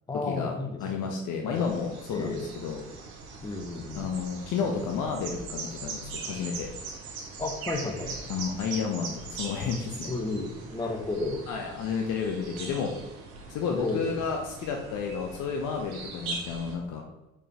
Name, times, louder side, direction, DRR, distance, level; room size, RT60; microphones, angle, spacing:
voice 1, 0.1-1.1 1.4-1.6 2.1-2.4 3.4-4.1 4.6-4.7 7.4-8.2 10.1-11.4 13.7-14.2, left 2 dB, 10° left, 3 dB, 1.2 m, -33 dB
voice 2, 0.8-2.8 3.9-6.7 8.3-10.1 11.5-12.9 13.5-17.0, left 6 dB, 45° left, 2 dB, 0.9 m, -31 dB
sound 1, 1.5-16.7, right 4 dB, 60° right, 1.7 m, -41 dB
5.1 x 4.9 x 4.8 m, 1.0 s
figure-of-eight pair, 65°, 42 cm